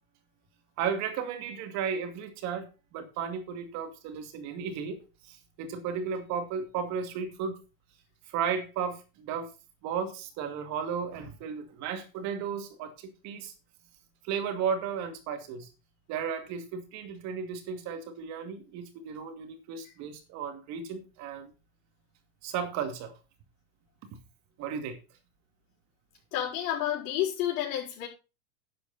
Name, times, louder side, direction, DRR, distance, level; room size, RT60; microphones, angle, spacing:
voice 1, 0.8-5.0 5.3-7.6 8.3-9.5 9.8-13.5 14.2-15.7 16.1-21.5 22.4-23.1 24.6-25.0, right 7 dB, 40° right, 2.4 m, -34 dB
voice 2, 26.3-28.1, left 11 dB, 60° left, 5.5 m, -30 dB
11.0 x 8.3 x 4.2 m
supercardioid pair, 150°, 44 cm